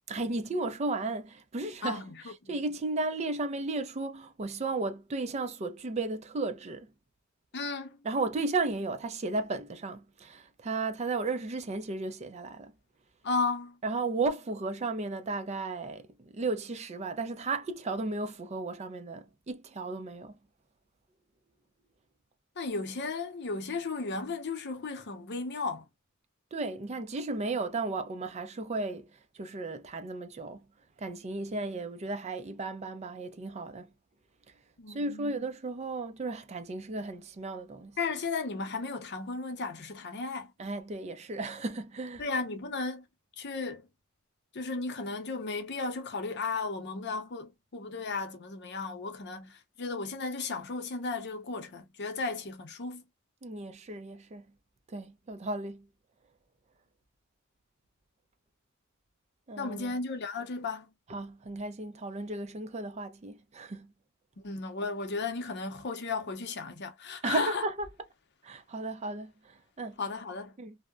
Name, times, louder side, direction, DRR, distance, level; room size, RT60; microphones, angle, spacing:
voice 1, 0.1-2.0 2.5-6.9 8.0-12.7 13.8-20.3 26.5-29.1 29.3-30.6 31.0-33.9 34.9-38.0 40.6-42.2 53.4-54.4 54.9-55.9 59.5-60.0 61.1-63.9 67.2-67.9 68.4-70.0 70.6-70.8, right 3 dB, 35° right, 0.4 m, -34 dB
voice 2, 1.8-2.5 7.5-8.0 13.2-13.8 22.6-25.8 34.8-35.3 38.0-40.5 42.2-43.0 43.4-43.9 44.5-53.0 59.6-60.9 64.4-67.6 70.0-70.5, left 4 dB, 55° left, 0.7 m, -35 dB
2.7 x 2.1 x 2.2 m
head